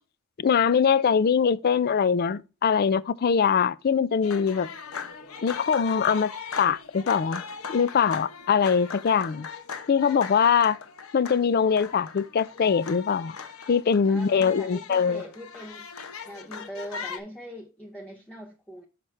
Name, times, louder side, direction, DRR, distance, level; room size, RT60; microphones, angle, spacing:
voice 1, 0.4-4.7 5.4-6.3 6.6-7.4 7.7-9.5 9.9-10.8 11.1-13.4 13.7-15.2, left 6 dB, 45° left, 0.3 m, -22 dB
sound 1, 4.2-17.2, left 6 dB, 70° left, 0.9 m, -39 dB
voice 2, 14.1-15.9 16.2-18.8, equal, 5° left, 0.6 m, -41 dB
6.2 x 5.8 x 3.2 m
head